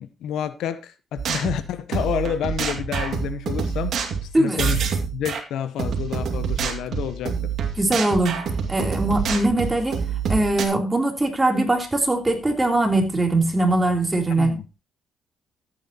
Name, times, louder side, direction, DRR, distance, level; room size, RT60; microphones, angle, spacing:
voice 1, 0.0-3.9 4.2-4.8 5.1-7.3 14.3-14.6, left 9 dB, 80° left, 0.9 m, -29 dB
sound 1, 1.2-5.4 5.8-10.6, right 6 dB, 65° right, 2.3 m, -27 dB
voice 2, 7.8-8.3 8.7-10.0 10.3-14.5, right 2 dB, 15° right, 3.2 m, -21 dB
14.0 x 9.1 x 2.9 m
cardioid pair, 90°, 0 cm